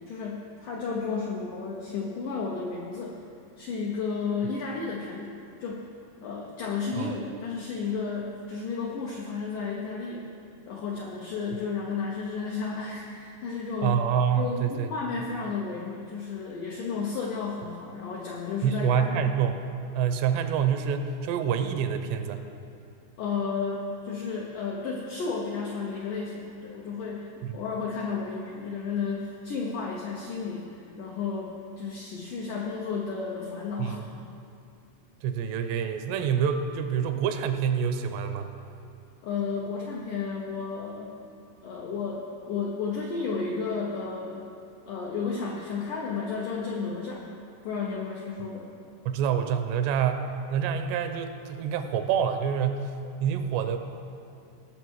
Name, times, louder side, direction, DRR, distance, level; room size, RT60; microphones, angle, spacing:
voice 1, 0.1-3.2 3.6-5.9 6.2-10.2 10.7-14.0 14.4-19.4 23.2-34.0 39.2-41.2 41.6-44.4 44.9-47.2 47.6-48.7, left 5 dB, 80° left, -2 dB, 1.8 m, -33 dB
voice 2, 13.8-14.9 18.6-19.6 19.9-22.4 27.4-27.5 33.8-34.1 35.2-38.5 49.1-52.9 53.2-53.8, right 7 dB, 80° right, 8 dB, 2.7 m, -27 dB
18.5 x 6.7 x 4.7 m, 2.5 s
omnidirectional pair, 5.0 m